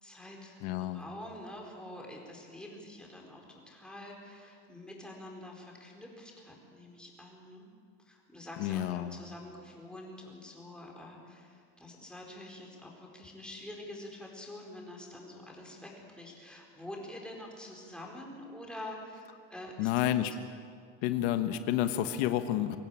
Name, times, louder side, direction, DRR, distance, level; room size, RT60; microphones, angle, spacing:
voice 1, 0.0-7.7 8.0-20.1, left 1 dB, 5° left, -1 dB, 4.6 m, -47 dB
voice 2, 0.6-1.0 8.6-9.2 19.8-20.3 21.0-22.8, left 12 dB, 85° left, 9 dB, 1.3 m, -30 dB
23.5 x 16.5 x 9.0 m, 2.2 s
cardioid pair, 145°, 31 cm